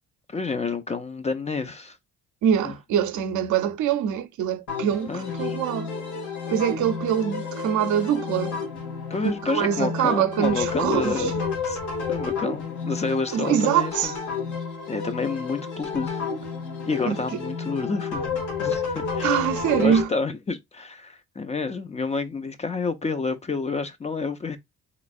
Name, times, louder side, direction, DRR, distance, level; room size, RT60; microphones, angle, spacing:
voice 1, 0.3-2.0 2.6-2.8 5.1-5.6 9.1-11.3 11.6-11.8 12.1-14.2 14.9-16.2 16.9-18.3 18.6-19.3 19.8-24.6, left 4 dB, 25° left, 0.4 m, -29 dB
voice 2, 2.4-5.9 6.5-8.6 9.5-11.3 13.3-14.1 17.0-17.2 19.2-20.1, right 9 dB, 75° right, 0.6 m, -24 dB
sound 1, 4.7-20.0, left 5 dB, 80° left, 1.4 m, -31 dB
3.4 x 3.0 x 2.5 m
cardioid pair, 90°, 30 cm